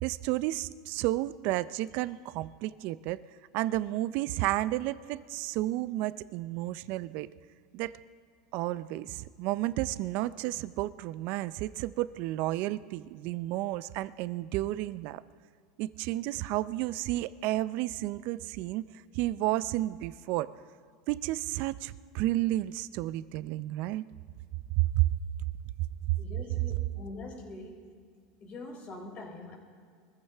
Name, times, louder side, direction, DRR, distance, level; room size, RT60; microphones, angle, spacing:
voice 1, 0.0-3.3 3.5-7.3 7.7-8.0 8.5-15.2 15.8-18.8 19.1-20.5 21.1-24.0 24.8-25.1, right 16 dB, 55° right, 16 dB, 0.5 m, -31 dB
voice 2, 26.2-28.0 28.4-29.6, left 2 dB, 35° left, 1 dB, 4.0 m, -44 dB
24.0 x 14.5 x 3.5 m, 2.1 s
supercardioid pair, 120°, 4 cm